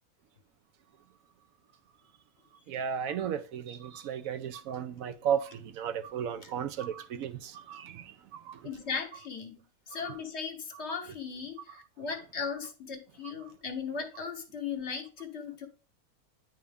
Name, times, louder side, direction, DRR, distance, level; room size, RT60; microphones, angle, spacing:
voice 1, 2.7-8.6, right 8 dB, 75° right, 1.0 m, -34 dB
voice 2, 8.6-9.6 9.9-15.7, left 6 dB, 50° left, 1.2 m, -37 dB
9.8 x 3.5 x 3.4 m
omnidirectional pair, 1.5 m